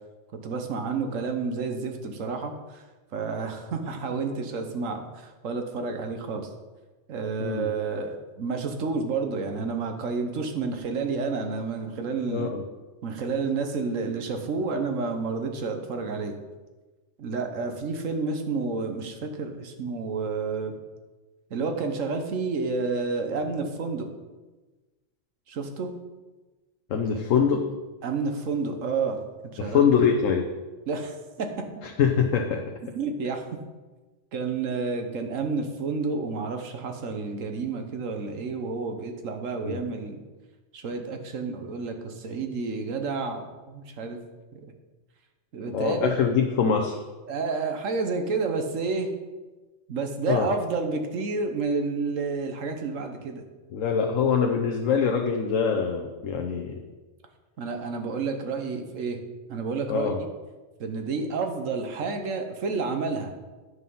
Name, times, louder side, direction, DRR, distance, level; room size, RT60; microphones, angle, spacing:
voice 1, 0.4-2.8 3.1-6.5 7.1-12.5 13.0-16.3 17.2-20.7 21.5-24.1 25.5-25.9 28.0-29.2 29.5-29.9 30.9-31.5 33.0-33.5 34.3-40.2 40.7-44.2 44.5-44.6 45.5-46.1 47.3-49.1 49.9-53.4 57.6-59.2 59.5-60.1 60.8-63.3, right 4 dB, 85° right, 5 dB, 1.4 m, -30 dB
voice 2, 7.4-7.7 12.3-12.6 26.9-27.7 29.6-30.5 31.8-32.6 39.6-39.8 45.7-47.0 50.3-50.5 53.7-56.8 59.9-60.2, left 6 dB, 85° left, 3 dB, 1.1 m, -24 dB
9.6 x 5.7 x 5.5 m, 1.2 s
omnidirectional pair, 1.3 m